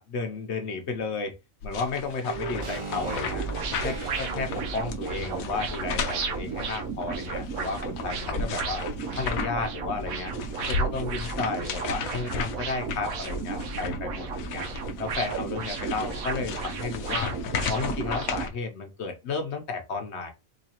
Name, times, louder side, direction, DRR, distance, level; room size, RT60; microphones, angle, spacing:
voice 1, 0.0-1.4 1.6-3.4 3.8-8.8 9.2-10.3 10.7-14.6 15.0-17.3 17.7-20.3, left 4 dB, 60° left, 5 dB, 0.9 m, -33 dB
sound 1, 1.6-9.7 10.0-18.5, left 5 dB, 85° left, 1.0 m, -35 dB
sound 2, 2.3-6.8 7.1-7.2, right 4 dB, 40° right, 0.4 m, -38 dB
sound 3, 2.9-18.5, right 5 dB, 85° right, 1.1 m, -33 dB
3.9 x 2.7 x 2.9 m, 0.26 s
omnidirectional pair, 1.4 m